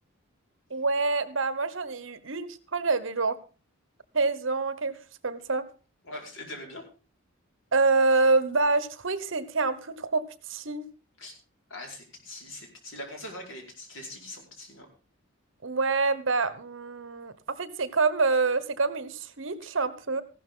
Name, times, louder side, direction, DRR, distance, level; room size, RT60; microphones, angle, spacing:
voice 1, 0.7-3.4 4.1-5.0 5.2-5.6 7.7-10.2 10.5-10.9 15.6-20.2, right 3 dB, 65° right, 14 dB, 1.2 m, -26 dB
voice 2, 6.0-6.8 11.2-11.3 11.7-14.9, left 1 dB, 65° left, 1 dB, 5.1 m, -42 dB
15.5 x 12.0 x 3.8 m, 0.35 s
head